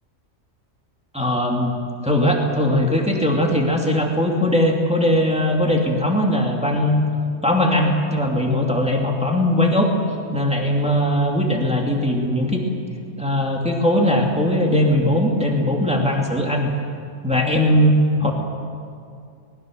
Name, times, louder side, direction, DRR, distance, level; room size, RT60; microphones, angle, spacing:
voice 1, 1.1-1.8 2.0-7.0 7.4-9.9 10.3-12.6 13.2-16.7 17.2-17.9 18.2-18.3, left 1 dB, 5° right, 0 dB, 2.6 m, -19 dB
24.5 x 20.5 x 6.5 m, 2.3 s
omnidirectional pair, 1.4 m